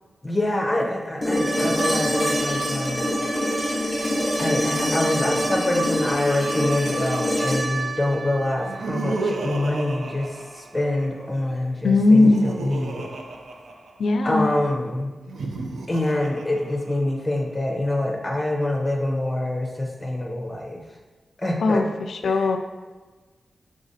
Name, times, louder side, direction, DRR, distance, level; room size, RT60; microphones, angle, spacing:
voice 1, 0.2-3.0 4.4-13.1 14.2-15.1 15.9-20.8 21.4-21.9 22.2-22.5, left 1 dB, 15° left, 0 dB, 0.6 m, -25 dB
sound 1, 1.2-9.3 11.4-11.5, equal, 10° right, 1.0 m, -25 dB
Laughter, 1.4-4.2 5.3-7.9 8.5-11.3 11.9-14.3 15.2-17.3, right 2 dB, 70° right, 0.4 m, -35 dB
voice 2, 11.8-12.5 14.0-14.5 21.6-22.6, left 3 dB, 75° left, 7 dB, 0.3 m, -19 dB
4.9 x 3.6 x 2.7 m, 1.3 s
wide cardioid pair, 150°, 0 cm